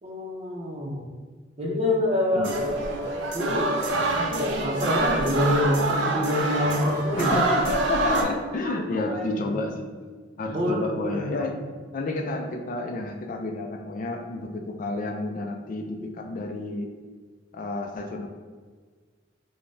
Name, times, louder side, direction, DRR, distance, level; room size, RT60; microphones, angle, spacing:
voice 1, 0.0-1.0 1.6-2.7 3.3-3.7 4.1-7.3 8.6-8.7 9.1-9.5 10.5-11.5, left 1 dB, 35° right, -2 dB, 0.6 m, -26 dB
sound 1, 2.4-8.2, right 2 dB, 75° right, 0.5 m, -26 dB
voice 2, 7.2-9.9 10.4-11.6 11.9-16.9 17.5-18.3, left 2 dB, 45° left, 3 dB, 0.4 m, -30 dB
4.9 x 2.1 x 2.6 m, 1.5 s
head